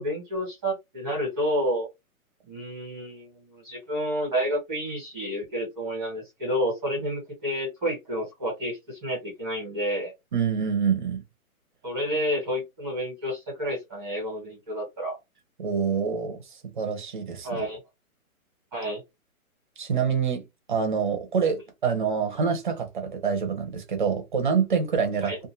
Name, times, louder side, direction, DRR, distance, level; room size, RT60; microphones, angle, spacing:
voice 1, 0.0-1.9 2.5-10.1 11.8-15.2 17.4-17.8 18.7-19.0 25.2-25.4, equal, 10° right, 1.1 m, -30 dB
voice 2, 10.3-11.2 15.6-16.4 16.8-17.6 19.8-25.3, right 6 dB, 35° right, 0.8 m, -26 dB
2.6 x 2.5 x 2.5 m
hypercardioid pair, 170°, 44 cm